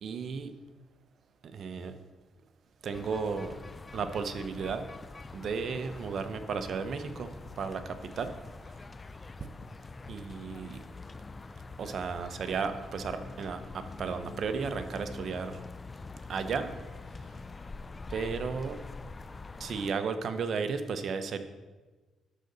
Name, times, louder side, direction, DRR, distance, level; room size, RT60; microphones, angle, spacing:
voice 1, 0.0-0.5 1.4-1.9 2.8-3.6 3.9-4.9 5.3-7.3 7.6-8.3 10.1-10.8 11.8-15.6 16.3-16.7 18.1-18.8 19.6-21.4, right 5 dB, 55° right, 9 dB, 0.8 m, -34 dB
sound 1, 2.9-19.9, left 3 dB, 25° left, 0.4 m, -45 dB
11.5 x 4.0 x 6.7 m, 1.3 s
cardioid pair, 90°, 0 cm